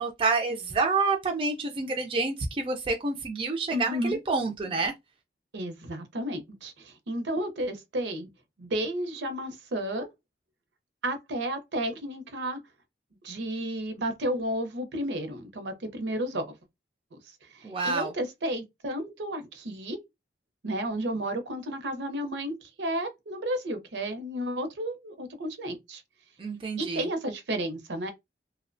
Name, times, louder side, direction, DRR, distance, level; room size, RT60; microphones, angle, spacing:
voice 1, 0.0-4.9 17.6-18.1 26.4-27.1, right 4 dB, 30° right, 0.3 m, -28 dB
voice 2, 3.7-4.2 5.5-8.3 8.6-10.1 11.0-12.6 13.2-16.5 17.1-17.2 17.5-20.0 20.6-26.0 26.8-28.1, right 1 dB, 75° right, 0.6 m, -32 dB
2.7 x 2.1 x 2.5 m
head